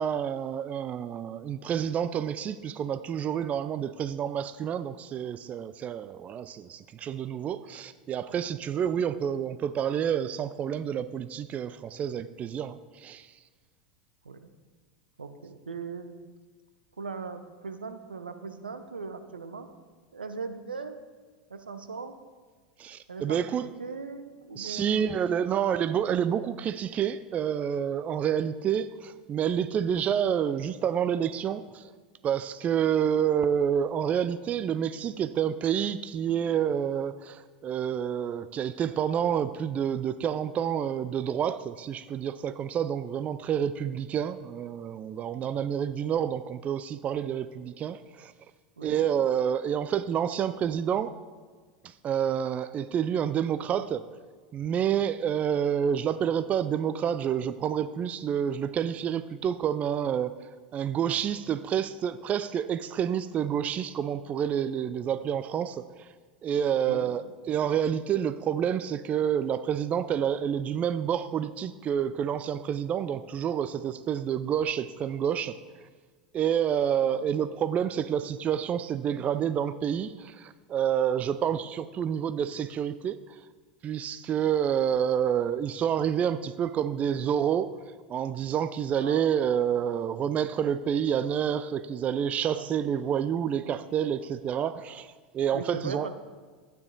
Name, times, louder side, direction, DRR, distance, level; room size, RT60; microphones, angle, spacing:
voice 1, 0.0-13.4 22.8-23.6 24.6-31.9 32.2-48.3 48.8-51.1 51.8-54.0 54.5-66.1 66.4-75.6 76.3-83.5 83.8-87.7 88.1-96.1, right 9 dB, 30° right, 13 dB, 0.4 m, -28 dB
voice 2, 15.2-16.2 17.0-19.7 20.1-21.0 21.5-22.2 23.1-25.2 45.3-45.7 48.8-49.1 66.8-67.1 77.0-77.3 89.0-89.3 92.5-92.7 93.6-93.7 95.4-96.1, right 4 dB, 80° right, 9 dB, 0.9 m, -39 dB
12.5 x 9.3 x 3.9 m, 1.5 s
figure-of-eight pair, 85°, 5 cm